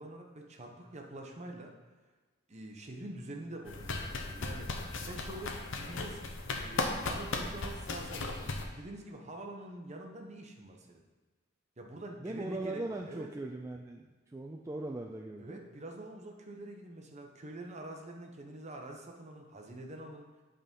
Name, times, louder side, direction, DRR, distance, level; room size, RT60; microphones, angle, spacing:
voice 1, 0.0-1.7 2.5-8.5 8.8-11.0 11.8-13.3 15.4-20.3, right 1 dB, 35° right, 2 dB, 0.9 m, -46 dB
sound 1, 3.7-8.6, left 3 dB, 65° left, 0.8 m, -37 dB
voice 2, 12.2-15.6, right 2 dB, 15° right, 0 dB, 0.3 m, -39 dB
8.7 x 3.7 x 5.2 m, 1.3 s
head